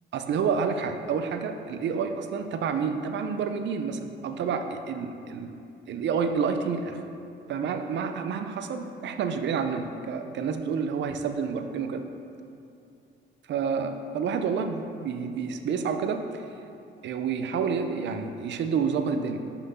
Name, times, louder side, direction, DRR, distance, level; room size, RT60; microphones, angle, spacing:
voice 1, 0.1-7.0 7.5-12.0 13.5-16.4 17.0-19.4, right 6 dB, 65° right, 7 dB, 0.6 m, -29 dB
5.8 x 5.8 x 5.5 m, 2.7 s
cardioid pair, 90°, 20 cm